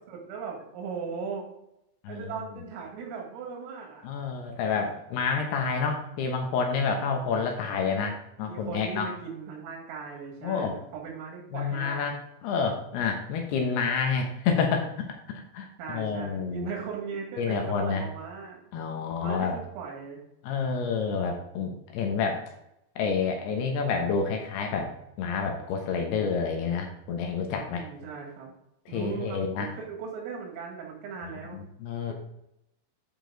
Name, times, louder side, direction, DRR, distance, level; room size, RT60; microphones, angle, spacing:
voice 1, 0.1-1.5 2.1-4.1 4.7-4.9 8.4-12.1 15.8-18.6 19.2-20.2 27.7-28.6 28.9-31.6 32.1-32.2, right 6 dB, 90° right, -2 dB, 5.0 m, -38 dB
voice 2, 2.0-2.3 4.0-9.1 10.4-10.7 11.5-16.7 17.4-18.0 18.7-19.6 20.4-22.4 23.0-24.9 25.2-27.9 28.9-29.7 31.2-32.1, left 5 dB, 75° left, 3 dB, 2.5 m, -29 dB
12.0 x 5.2 x 4.0 m, 0.81 s
omnidirectional pair, 5.8 m